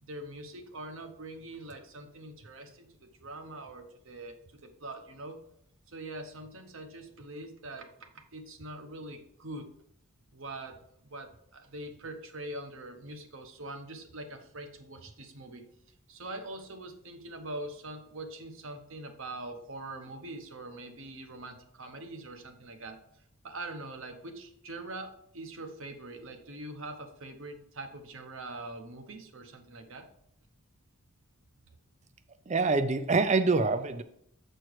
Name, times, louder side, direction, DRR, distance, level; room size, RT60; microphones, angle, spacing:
voice 1, 0.0-4.4 4.6-5.4 5.9-9.7 10.3-15.7 16.1-23.0 23.4-30.1, right 2 dB, 60° right, 1.0 m, -43 dB
voice 2, 32.5-34.0, right 3 dB, 30° right, 0.4 m, -25 dB
7.8 x 4.5 x 4.7 m
head